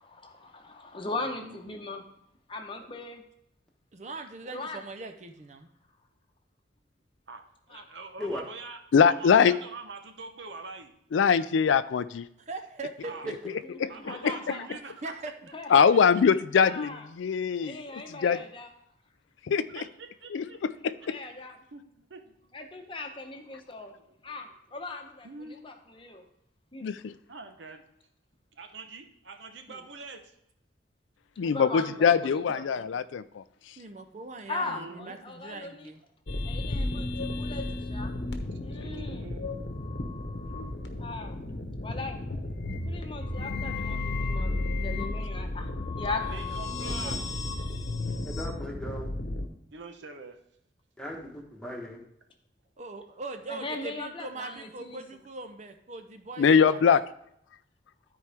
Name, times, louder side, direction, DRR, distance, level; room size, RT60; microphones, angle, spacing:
voice 1, 0.0-2.0 2.5-3.2 4.5-4.8 7.7-7.8 13.7-14.7 15.5-16.0 16.6-17.1 17.6-18.7 21.1-21.6 22.5-23.9 24.2-26.2 26.7-26.9 29.7-29.8 31.4-32.9 34.5-35.9 36.4-38.1 38.6-39.3 41.0-41.4 41.8-42.2 42.8-44.6 44.8-47.2 53.5-55.0, left 2 dB, 25° left, 4 dB, 0.9 m, -39 dB
voice 2, 1.2-1.8 7.3-8.8 9.1-10.9 13.0-13.3 13.9-15.1 19.7-20.6 21.7-22.6 24.0-24.3 25.2-25.6 27.3-27.9 28.5-30.3 31.9-32.1 34.6-35.2 36.7-36.9 38.5-39.5 46.2-47.2 49.7-50.4, right 3 dB, 80° right, 5 dB, 1.0 m, -44 dB
voice 3, 3.9-5.7 12.4-13.5 15.0-15.3 33.8-36.0 52.8-56.8, right 3 dB, 40° right, 7 dB, 0.6 m, -41 dB
voice 4, 8.9-9.5 11.1-12.3 15.7-18.4 19.5-19.6 20.3-20.4 20.8-20.9 26.8-27.1 31.4-33.4 56.4-57.0, left 6 dB, 85° left, 14 dB, 0.4 m, -22 dB
sound 1, 36.3-49.5, left 2 dB, 65° left, 1.0 m, -33 dB
voice 5, 48.2-49.1 51.0-52.0, left 1 dB, 5° left, -1 dB, 1.3 m, -37 dB
12.5 x 4.6 x 3.4 m, 0.75 s
head